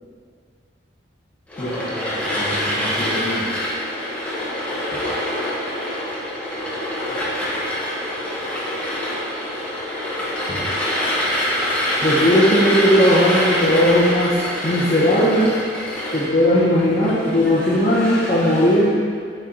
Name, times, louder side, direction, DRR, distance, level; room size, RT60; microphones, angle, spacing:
sound 1, 1.5-18.8, left 1 dB, 5° left, 1.3 m, -25 dB
voice 1, 1.6-3.5 4.9-5.0 7.5-7.6 10.5-10.6 12.0-14.4 14.6-15.6 16.1-19.0, equal, 35° left, -10 dB, 1.0 m, -18 dB
9.0 x 4.5 x 3.9 m, 2.2 s
head